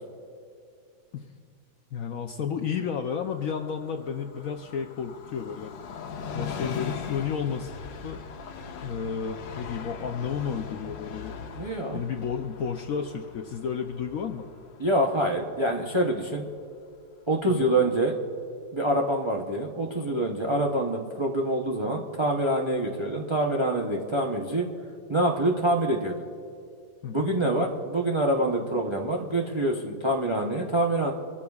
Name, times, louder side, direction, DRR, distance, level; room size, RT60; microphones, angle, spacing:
voice 1, 1.9-5.7 6.3-7.8 8.0-8.2 8.8-11.3 11.9-14.5 17.5-17.6 27.0-27.3, left 7 dB, 70° left, 5 dB, 0.8 m, -32 dB
Train, 3.2-16.5 16.9-17.0, left 6 dB, 85° left, 1.6 m, -40 dB
voice 2, 11.6-12.0 14.8-16.5 17.3-18.1 18.7-24.7 25.1-26.1 27.1-31.1, right 1 dB, 40° right, -1 dB, 0.4 m, -26 dB
23.5 x 14.0 x 2.4 m, 2.3 s
omnidirectional pair, 2.0 m